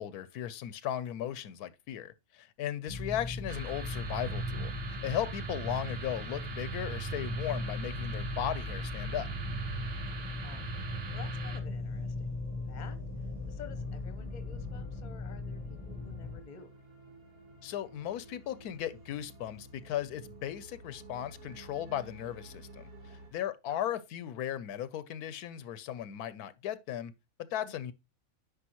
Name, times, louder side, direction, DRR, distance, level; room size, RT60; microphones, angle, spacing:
voice 1, 0.0-9.3 17.6-27.1 27.4-27.9, left 11 dB, 85° left, 1.1 m, -37 dB
sound 1, 2.9-16.4, left 3 dB, 10° left, 0.5 m, -39 dB
sound 2, 3.5-11.6, right 7 dB, 45° right, 1.0 m, -40 dB
sound 3, 8.1-23.3, right 2 dB, 65° right, 2.7 m, -54 dB
voice 2, 10.1-10.6 11.1-12.4 12.7-13.0 13.5-16.7 23.7-23.8 27.6-27.8, left 7 dB, 35° left, 0.8 m, -51 dB
9.9 x 5.2 x 2.9 m
omnidirectional pair, 1.6 m